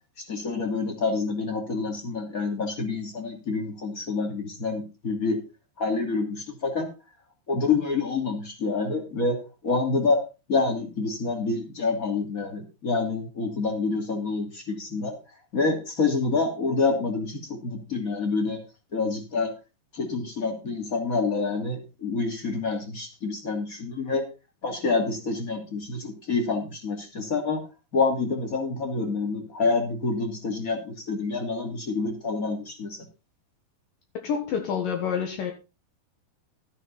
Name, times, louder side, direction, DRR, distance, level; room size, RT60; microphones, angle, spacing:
voice 1, 0.3-5.4 5.8-6.9 7.5-9.4 9.6-10.2 10.5-15.1 15.5-18.6 18.9-19.5 19.9-24.2 24.6-27.6 27.9-33.0, left 4 dB, 25° left, 3 dB, 2.7 m, -27 dB
voice 2, 34.2-35.5, left 7 dB, 65° left, 4 dB, 2.9 m, -28 dB
13.0 x 9.8 x 4.1 m, 0.30 s
omnidirectional pair, 4.4 m